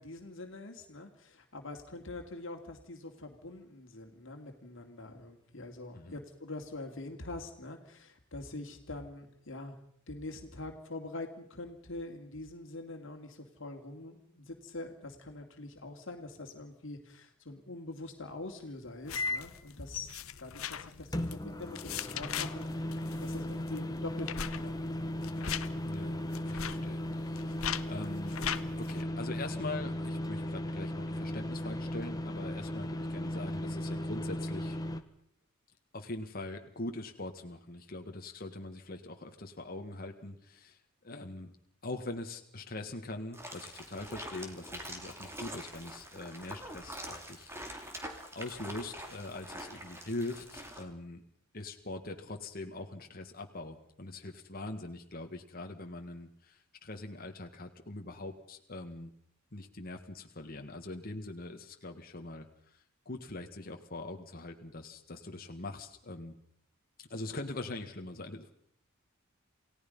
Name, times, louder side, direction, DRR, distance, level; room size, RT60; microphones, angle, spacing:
voice 1, 0.0-9.8 10.1-20.1 20.4-24.8, left 2 dB, 65° left, 4 dB, 2.5 m, -44 dB
sound 1, 19.1-29.0, left 9 dB, 80° left, 0.9 m, -41 dB
sound 2, 19.1-19.6 21.1-35.0, left 1 dB, 20° left, 1.3 m, -36 dB
voice 2, 25.8-28.4 28.8-34.8 35.9-41.5 41.8-51.2 51.5-59.1 59.5-66.4 67.1-68.5, left 2 dB, 45° left, 4 dB, 1.8 m, -42 dB
sound 3, 43.3-50.8, right 1 dB, 10° right, 2.8 m, -45 dB
28.5 x 17.0 x 5.5 m, 0.69 s
head